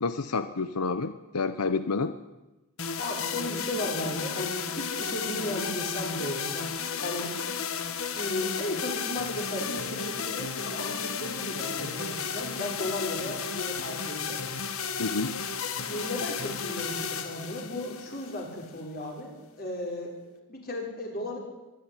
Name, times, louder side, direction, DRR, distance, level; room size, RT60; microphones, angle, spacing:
voice 1, 0.0-2.1 15.0-15.4, left 4 dB, 90° left, 11 dB, 0.9 m, -29 dB
sound 1, 2.8-18.8, left 6 dB, 65° left, 1.6 m, -33 dB
voice 2, 3.0-6.7 7.0-7.3 8.2-14.4 15.8-19.3 19.6-20.1 20.5-21.4, left 1 dB, 45° left, 0 dB, 5.7 m, -35 dB
24.0 x 12.5 x 10.0 m, 1.1 s
head